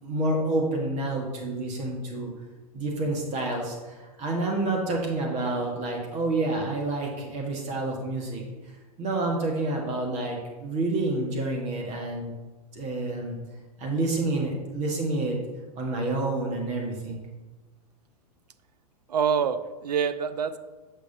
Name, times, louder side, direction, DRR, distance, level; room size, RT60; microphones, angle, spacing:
voice 1, 0.0-2.3 2.7-8.4 9.0-12.3 12.7-13.4 13.8-15.4 15.8-17.2, right 2 dB, 35° right, 0 dB, 1.4 m, -28 dB
voice 2, 19.1-20.6, right 7 dB, 80° right, 12 dB, 0.5 m, -26 dB
8.1 x 5.7 x 2.7 m, 1.2 s
hypercardioid pair, 105°, 20 cm